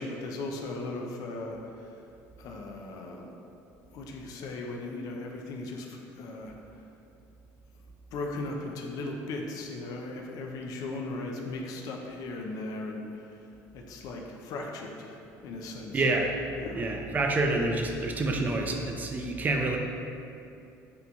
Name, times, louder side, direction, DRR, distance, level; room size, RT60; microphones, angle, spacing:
voice 1, 0.0-1.9 2.4-3.3 3.9-6.5 8.1-13.3 13.7-16.0 16.6-16.9, left 2 dB, 65° left, 1 dB, 0.4 m, -37 dB
voice 2, 15.9-16.3 16.8-19.8, right 2 dB, 25° right, 2 dB, 0.3 m, -27 dB
2.8 x 2.2 x 3.8 m, 2.6 s
cardioid pair, 105°, 7 cm